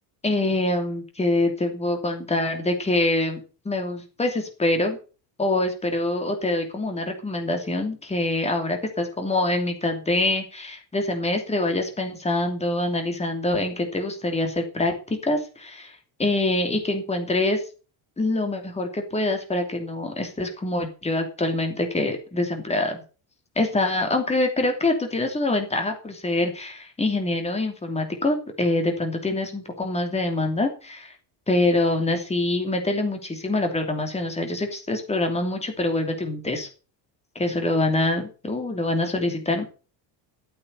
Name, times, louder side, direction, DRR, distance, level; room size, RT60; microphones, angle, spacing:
voice 1, 0.2-3.4 3.6-5.0 5.4-15.9 16.2-17.6 18.2-23.0 23.6-31.1 31.5-36.7 37.3-39.6, left 2 dB, 15° left, 4 dB, 2.9 m, -25 dB
13.0 x 8.7 x 6.7 m, 0.36 s
cardioid pair, 140°, 47 cm